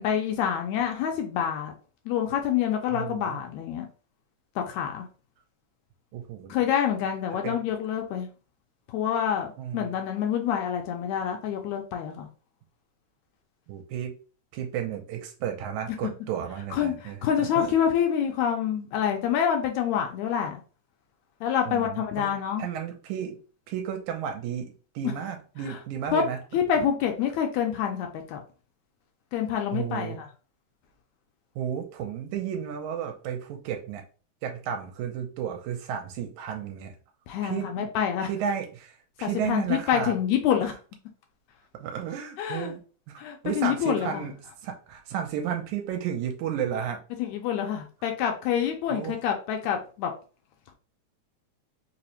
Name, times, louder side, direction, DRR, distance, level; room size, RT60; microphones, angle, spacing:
voice 1, 0.0-1.7 2.1-3.9 4.6-5.1 6.5-8.3 8.9-12.3 16.7-20.6 21.4-22.6 25.0-25.1 25.7-25.8 26.1-26.2 26.5-28.4 29.3-30.3 37.3-38.3 39.2-40.7 42.4-42.7 43.2-44.2 47.2-50.1, left 9 dB, 80° left, 3 dB, 1.8 m, -27 dB
voice 2, 2.9-3.4 6.1-6.5 7.3-7.6 9.6-9.9 13.7-14.2 14.5-17.7 21.7-22.3 22.6-23.4 23.7-26.4 29.7-30.2 31.6-34.0 34.4-37.0 37.4-37.9 38.3-40.2 40.6-40.7 41.8-42.8 43.1-44.3 44.6-47.0 48.9-49.2, right 8 dB, 85° right, 4 dB, 2.0 m, -33 dB
4.8 x 2.0 x 2.8 m, 0.36 s
omnidirectional pair, 3.5 m